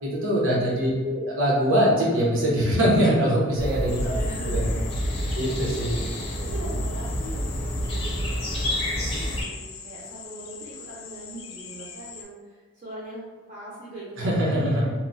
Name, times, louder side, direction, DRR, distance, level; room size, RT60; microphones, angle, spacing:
voice 1, 0.0-4.1 4.5-4.6 5.4-6.0 14.2-14.9, equal, 80° right, -5 dB, 0.8 m, -22 dB
voice 2, 0.8-1.4 4.1-4.8 6.1-15.0, right 1 dB, 40° right, -7 dB, 0.5 m, -41 dB
sound 1, 3.6-9.4, equal, 30° left, 0.6 m, -28 dB
sound 2, 3.9-12.2, left 6 dB, 80° left, 0.4 m, -42 dB
2.8 x 2.1 x 2.6 m, 1.4 s
head